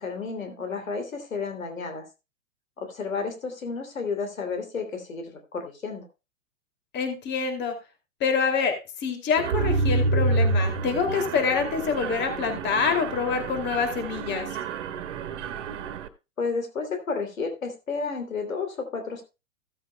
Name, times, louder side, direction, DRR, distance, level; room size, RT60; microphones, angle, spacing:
voice 1, 0.0-2.0 2.8-6.1 16.4-19.2, left 4 dB, 85° left, 5 dB, 3.2 m, -32 dB
voice 2, 6.9-7.7 8.2-8.7 9.0-14.5, left 5 dB, 25° left, 6 dB, 2.7 m, -26 dB
Mechanisms, 9.4-16.1, right 3 dB, 60° right, 1.6 m, -28 dB
16.0 x 8.4 x 2.3 m, 0.27 s
hypercardioid pair, 120°, 39 cm